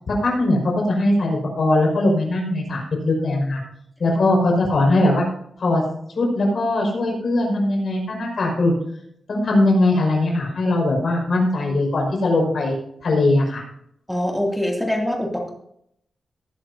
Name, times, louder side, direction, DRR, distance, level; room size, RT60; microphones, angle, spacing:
voice 1, 0.1-3.6 4.0-5.2 5.6-5.8 6.2-8.7 9.3-12.8 13.0-13.6, left 2 dB, 60° left, 0 dB, 5.2 m, -20 dB
voice 2, 14.1-15.5, left 1 dB, 5° left, 0 dB, 2.7 m, -24 dB
19.0 x 10.5 x 2.8 m, 0.71 s
wide cardioid pair, 135°, 0 cm